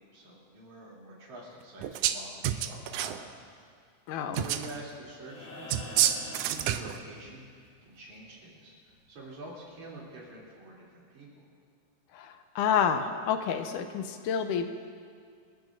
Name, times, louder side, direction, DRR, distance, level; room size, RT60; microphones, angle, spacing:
voice 1, 0.1-3.3 4.2-5.5 6.3-8.7 9.1-11.4, right 2 dB, 65° right, -5 dB, 4.5 m, -46 dB
sound 1, 1.8-2.2 2.4-3.2 4.3-4.7 5.7-7.0, right 11 dB, 80° right, 1.8 m, -28 dB
voice 2, 4.1-4.4 12.1-14.7, left 7 dB, 80° left, 7 dB, 2.2 m, -29 dB
sound 2, 5.2-7.5 9.4-9.5, left 1 dB, 45° left, 4.3 m, -45 dB
27.5 x 13.5 x 2.6 m, 2.1 s
omnidirectional pair, 3.7 m